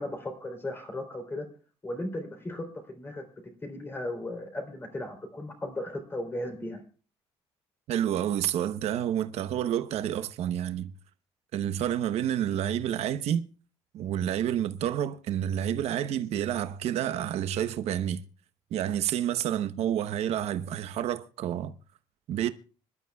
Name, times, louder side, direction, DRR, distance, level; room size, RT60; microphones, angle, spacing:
voice 1, 0.0-1.5 1.8-3.2 3.6-6.8, left 1 dB, 20° left, 3.4 m, -36 dB
voice 2, 7.9-10.9 11.5-13.4 13.9-18.2 18.7-21.7 22.3-22.5, right 10 dB, 70° right, 0.9 m, -29 dB
25.5 x 12.0 x 2.3 m
cardioid pair, 145°, 11 cm